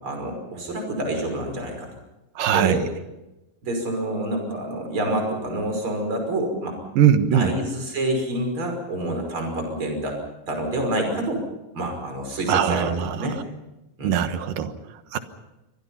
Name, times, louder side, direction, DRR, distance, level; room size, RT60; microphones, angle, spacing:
voice 1, 0.0-1.9 2.5-2.8 3.6-6.8 7.3-10.2 10.5-11.4 11.7-13.4 14.0-14.2, right 1 dB, 35° right, 4 dB, 6.3 m, -27 dB
voice 2, 2.4-2.9 7.0-7.5 12.5-13.4 14.0-15.2, right 9 dB, 75° right, 9 dB, 3.0 m, -21 dB
28.0 x 23.5 x 5.6 m, 0.97 s
omnidirectional pair, 4.0 m